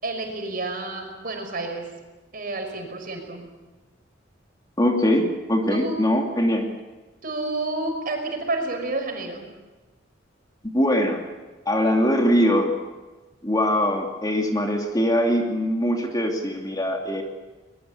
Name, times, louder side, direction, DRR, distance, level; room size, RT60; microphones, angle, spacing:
voice 1, 0.0-1.8 2.3-3.4 5.7-6.0 7.2-9.5, right 2 dB, 50° right, 4 dB, 6.0 m, -29 dB
voice 2, 4.8-6.7 10.7-11.2 11.7-12.8 13.4-17.2, equal, 20° left, 2 dB, 2.6 m, -22 dB
22.5 x 21.5 x 8.4 m, 1.2 s
head